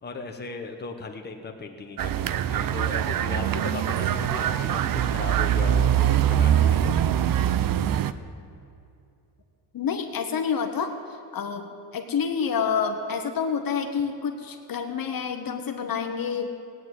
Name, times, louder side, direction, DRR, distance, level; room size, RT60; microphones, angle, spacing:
voice 1, 0.0-7.0, left 4 dB, 20° left, 3 dB, 1.2 m, -37 dB
sound 1, 2.0-8.1, right 10 dB, 50° right, 0.6 m, -23 dB
voice 2, 9.7-10.9 11.3-11.7 11.9-16.5, left 6 dB, 45° left, 5 dB, 1.2 m, -28 dB
17.0 x 9.4 x 8.2 m, 2.6 s
cardioid pair, 125°, 46 cm